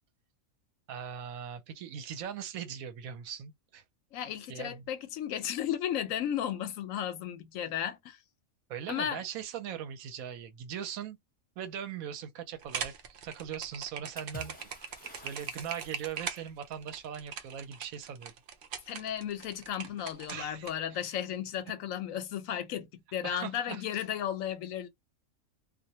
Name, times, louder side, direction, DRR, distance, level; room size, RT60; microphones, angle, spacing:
voice 1, 0.9-3.8 4.5-4.8 8.7-11.2 11.6-14.6 15.2-18.3 20.3-21.1 23.2-24.0, right 8 dB, 85° right, 1.0 m, -40 dB
voice 2, 4.1-8.2 8.9-9.2 18.9-24.9, left 10 dB, 75° left, 0.9 m, -34 dB
sound 1, 12.6-20.7, right 7 dB, 65° right, 0.5 m, -40 dB
Water / Splash splatter, 14.2-16.5, left 1 dB, 10° left, 0.6 m, -49 dB
2.4 x 2.1 x 2.7 m
omnidirectional pair, 1.4 m